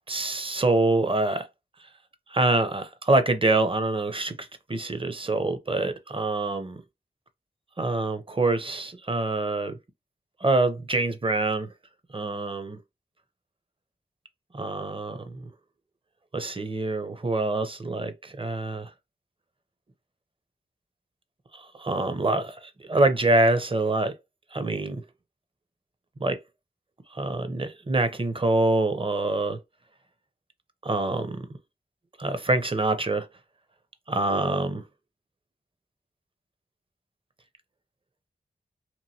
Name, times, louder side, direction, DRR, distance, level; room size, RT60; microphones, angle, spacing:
voice 1, 0.1-1.5 2.3-6.8 7.8-9.8 10.4-11.7 12.1-12.8 14.5-15.5 16.3-18.9 21.5-24.1 24.5-25.0 26.2-26.4 27.1-29.6 30.8-31.5 32.2-33.3 34.1-34.8, right 2 dB, 30° right, 0.6 m, -25 dB
3.0 x 2.6 x 2.7 m
cardioid pair, 45°, 18 cm